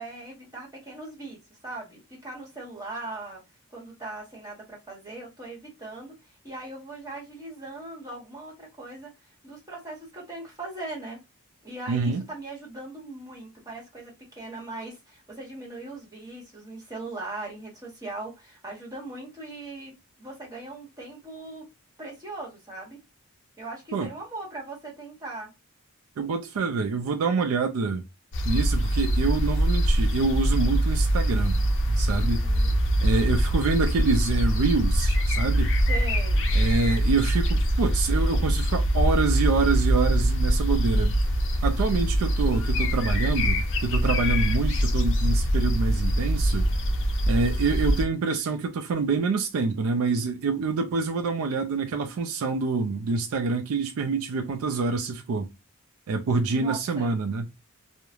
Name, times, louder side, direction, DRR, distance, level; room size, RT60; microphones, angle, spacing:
voice 1, 0.0-3.4 3.7-6.2 6.4-9.1 9.4-11.2 11.6-19.9 20.2-21.7 22.0-23.0 23.6-25.5 32.1-32.7 35.8-36.4 56.5-57.1, right 2 dB, 15° right, 1.1 m, -39 dB
voice 2, 11.9-12.2 23.9-24.1 26.2-28.0 28.4-31.6 31.9-32.4 33.0-35.7 36.5-41.2 41.6-46.7 47.3-55.5 56.1-57.5, right 4 dB, 70° right, 0.4 m, -26 dB
sound 1, 28.3-48.1, equal, 60° left, 0.6 m, -23 dB
3.1 x 2.1 x 2.3 m
head